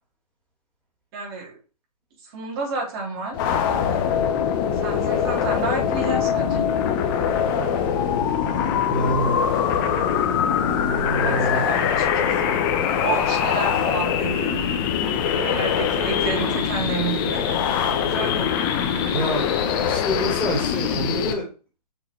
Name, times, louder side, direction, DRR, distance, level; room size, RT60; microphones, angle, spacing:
voice 1, 1.1-1.5 2.2-3.4 3.6-4.0 4.8-6.7 11.2-12.6 13.0-14.6 15.2-17.4 17.9-18.9, right 4 dB, 35° right, -2 dB, 3.6 m, -30 dB
sound 1, 3.3-21.3, left 8 dB, 35° left, 1.0 m, -23 dB
voice 2, 8.8-9.4 10.6-11.7 19.1-19.5 19.8-21.5, right 1 dB, 5° left, -5 dB, 3.1 m, -27 dB
6.6 x 5.4 x 3.3 m, 0.35 s
figure-of-eight pair, 130°, 20 cm